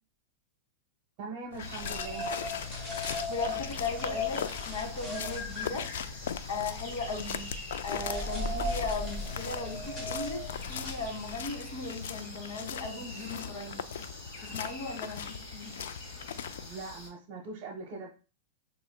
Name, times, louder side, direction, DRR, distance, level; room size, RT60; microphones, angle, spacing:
voice 1, 1.2-2.3 16.6-18.1, right 3 dB, 45° right, 1 dB, 1.0 m, -41 dB
sound 1, 1.5-16.7, left 8 dB, 80° left, 0.3 m, -40 dB
sound 2, 1.6-17.1, left 2 dB, 35° left, 2.1 m, -45 dB
sound 3, 1.6-11.6, left 2 dB, 20° left, 1.4 m, -38 dB
voice 2, 3.3-5.9 6.5-7.5 7.8-13.8 14.4-15.7, left 3 dB, 60° left, 1 dB, 1.8 m, -37 dB
6.9 x 3.0 x 2.2 m, 0.34 s
supercardioid pair, 155°, 0 cm